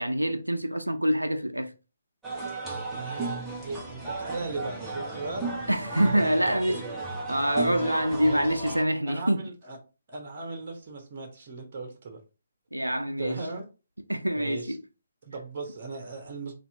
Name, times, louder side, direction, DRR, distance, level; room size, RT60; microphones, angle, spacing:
voice 1, 0.0-1.7 5.7-6.8 7.3-9.5 12.7-13.4 14.1-14.8, equal, 85° right, 0.5 m, -25 dB
sound 1, 2.2-8.8, right 3 dB, 5° right, 1.1 m, -35 dB
voice 2, 2.9-3.3 3.6-5.5 6.1-7.0 8.2-8.6 9.1-9.8 10.1-12.2 13.2-13.7 14.3-14.8 15.2-16.5, right 3 dB, 40° right, 1.1 m, -37 dB
4.2 x 2.6 x 4.4 m
figure-of-eight pair, 135°, 0 cm